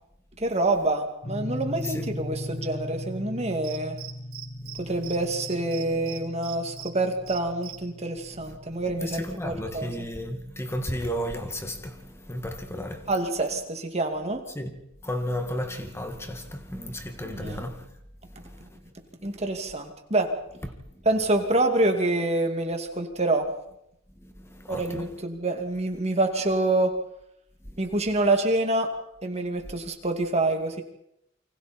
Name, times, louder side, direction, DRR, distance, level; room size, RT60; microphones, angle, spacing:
voice 1, 0.4-4.0 4.8-9.9 13.1-14.4 17.2-17.6 19.2-20.3 21.0-23.5 24.7-26.9 27.8-28.9 29.2-30.8, right 2 dB, 30° right, 2.6 m, -26 dB
sound 1, 1.2-11.4, left 1 dB, 40° left, 2.2 m, -39 dB
Cricket, 3.6-4.8 5.0-5.2 5.4-6.9 7.3-7.7, right 11 dB, 80° right, 3.6 m, -39 dB
voice 2, 9.0-13.1 14.5-14.7 15.0-17.9 18.3-18.8 24.2-25.1 27.7-27.8 29.6-29.8, equal, 10° left, 2.1 m, -34 dB
28.5 x 25.0 x 4.5 m
head